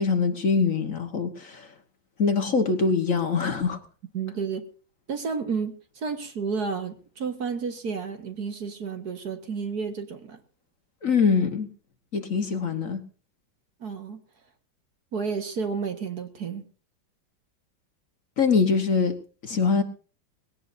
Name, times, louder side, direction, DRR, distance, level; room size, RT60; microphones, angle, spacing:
voice 1, 0.0-1.7 2.2-3.8 11.0-11.7 12.1-13.0 18.4-19.2 19.4-19.8, left 5 dB, 45° left, 1.7 m, -23 dB
voice 2, 4.1-4.6 5.1-10.4 13.8-14.2 15.1-16.6, right 5 dB, 55° right, 2.0 m, -31 dB
20.0 x 17.5 x 2.7 m
omnidirectional pair, 2.1 m